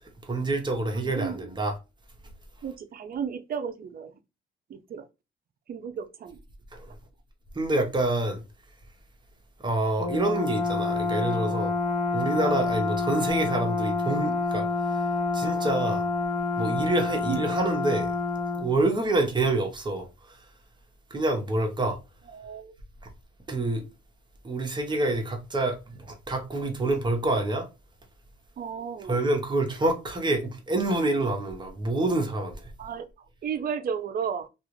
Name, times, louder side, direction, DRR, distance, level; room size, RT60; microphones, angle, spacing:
voice 1, 0.2-1.7 6.7-6.9 7.5-8.4 9.6-11.8 12.1-14.7 15.3-16.1 16.6-18.2 18.6-20.4 21.1-22.0 23.5-23.8 24.4-27.7 29.1-32.7, right 2 dB, 25° right, 0.8 m, -27 dB
voice 2, 0.9-1.5 2.6-4.1 4.7-5.1 5.7-6.4 17.3-17.5 22.3-22.7 28.6-29.2 32.8-34.5, right 7 dB, 50° right, 0.5 m, -34 dB
Brass instrument, 10.0-18.7, left 3 dB, 35° left, 0.6 m, -28 dB
2.4 x 2.4 x 3.1 m
cardioid pair, 90°, 20 cm